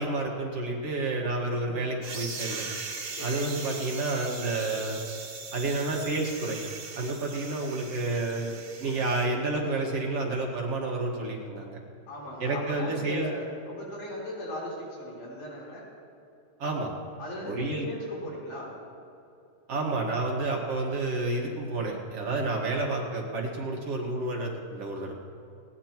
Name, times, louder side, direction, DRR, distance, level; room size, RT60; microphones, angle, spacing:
voice 1, 0.0-2.7 3.2-5.0 5.5-6.6 7.0-8.5 8.8-11.8 12.4-13.3 16.6-16.9 17.4-17.9 19.7-25.1, right 2 dB, 55° right, -1 dB, 2.5 m, -30 dB
voice 2, 1.6-2.0 3.1-3.6 12.1-15.8 17.2-18.7, equal, 75° left, -6 dB, 5.3 m, -38 dB
sound 1, 2.0-9.2, right 4 dB, 90° right, 3.5 m, -39 dB
20.0 x 18.0 x 2.9 m, 2.7 s
omnidirectional pair, 3.5 m